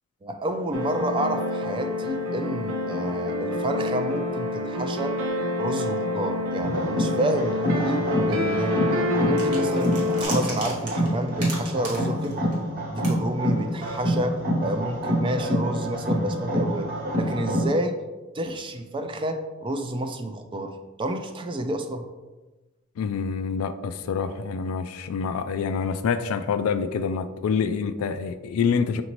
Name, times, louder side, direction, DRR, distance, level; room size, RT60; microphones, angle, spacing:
voice 1, 0.2-5.2 5.6-8.9 9.2-12.5 12.9-16.9 17.2-18.0 18.3-20.7 21.0-22.0, right 1 dB, 25° right, 6 dB, 0.3 m, -29 dB
sound 1, 0.7-10.2, left 2 dB, 65° right, 0.6 m, -27 dB
sound 2, 6.6-17.7, equal, 45° right, 1.1 m, -27 dB
sound 3, 9.4-12.8 13.0-13.1, right 2 dB, 85° right, 1.3 m, -36 dB
voice 2, 23.0-29.0, left 6 dB, 70° left, 10 dB, 0.3 m, -26 dB
5.9 x 2.6 x 3.0 m, 1.2 s
head